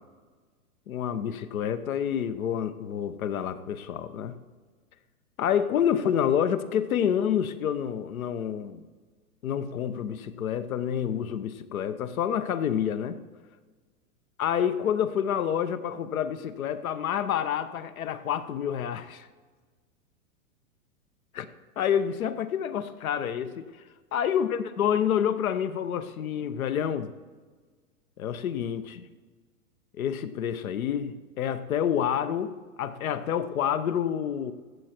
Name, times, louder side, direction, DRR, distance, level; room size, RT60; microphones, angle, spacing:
voice 1, 0.9-4.4 5.4-8.8 9.4-13.2 14.4-19.3 21.3-21.5 21.8-23.6 24.1-27.1 28.2-29.1 30.0-34.5, left 9 dB, 70° left, 12 dB, 1.0 m, -28 dB
14.5 x 8.0 x 4.4 m, 1.4 s
hypercardioid pair, 115°, 43 cm